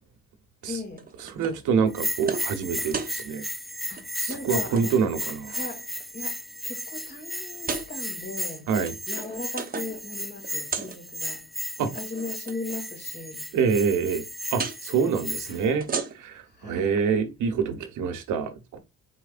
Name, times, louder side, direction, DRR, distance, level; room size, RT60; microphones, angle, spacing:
voice 1, 0.6-1.1 3.9-4.9 5.5-5.9 6.1-8.7 9.1-11.5 11.8-13.5 15.4-15.8 16.5-17.0, left 3 dB, 35° left, 2.6 m, -38 dB
sound 1, 1.0-1.6 2.0-2.5 2.8-3.2 3.8-4.0 4.3-4.9 5.5-6.0 6.6-6.7 7.5-7.9 8.6-10.0 10.3-11.0 11.8-12.6 14.5-14.8 15.7-16.4, right 5 dB, 30° right, 0.9 m, -34 dB
voice 2, 1.3-3.5 4.2-5.6 8.7-8.9 11.8-11.9 13.5-14.2 14.5-15.9 16.2-18.8, right 6 dB, 80° right, 1.1 m, -26 dB
Bell, 1.9-15.7, equal, ahead, 0.4 m, -35 dB
4.5 x 4.4 x 2.5 m
cardioid pair, 90°, 30 cm